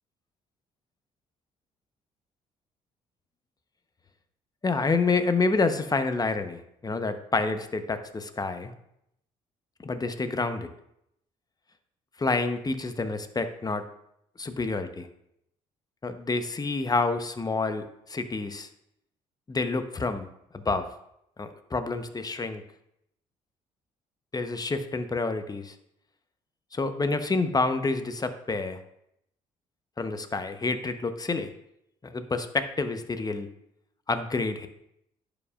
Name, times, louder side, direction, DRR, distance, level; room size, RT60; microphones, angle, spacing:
voice 1, 4.6-8.7 9.8-10.7 12.2-13.8 14.4-15.1 16.0-18.7 19.5-20.3 20.5-20.8 21.4-22.6 24.3-25.7 26.7-28.8 30.0-31.5 32.0-33.5 34.1-34.7, left 3 dB, 25° left, 8 dB, 0.9 m, -28 dB
11.0 x 5.1 x 2.4 m, 0.77 s
hypercardioid pair, 55°, 15 cm